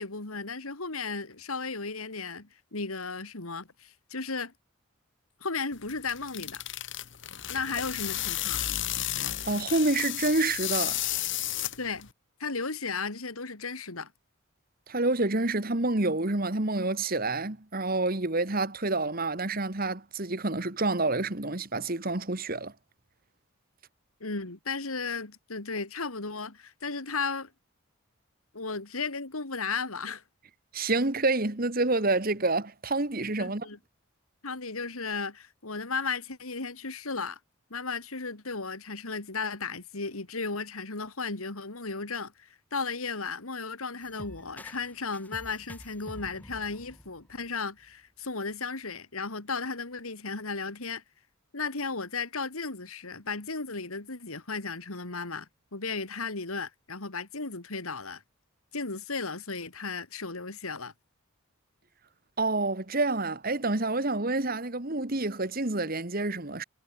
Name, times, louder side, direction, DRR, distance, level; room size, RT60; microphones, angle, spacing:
voice 1, 0.0-4.5 5.4-6.6 7.5-8.7 11.8-12.1 12.4-14.1 24.2-27.5 28.5-30.2 33.4-33.8 34.4-37.4 37.7-51.0 51.5-58.2 58.7-60.9, left 4 dB, 80° left, 2.5 m, -35 dB
sound 1, 5.7-12.1, left 13 dB, 60° left, 2.0 m, -33 dB
voice 2, 9.4-11.0 14.9-22.7 30.7-33.7 62.4-66.6, right 2 dB, 40° right, 1.7 m, -28 dB
sound 2, 44.0-47.9, equal, 5° left, 7.1 m, -48 dB
head